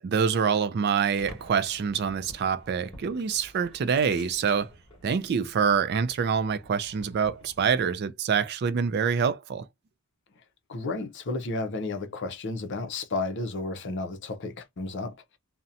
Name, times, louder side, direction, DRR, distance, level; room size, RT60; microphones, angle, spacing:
voice 1, 0.0-4.7 5.0-9.7, right 6 dB, 45° right, 0.3 m, -26 dB
sound 1, 1.2-7.8, equal, 25° left, 1.1 m, -50 dB
voice 2, 10.7-15.1, left 3 dB, 55° left, 0.5 m, -32 dB
2.7 x 2.1 x 2.4 m
head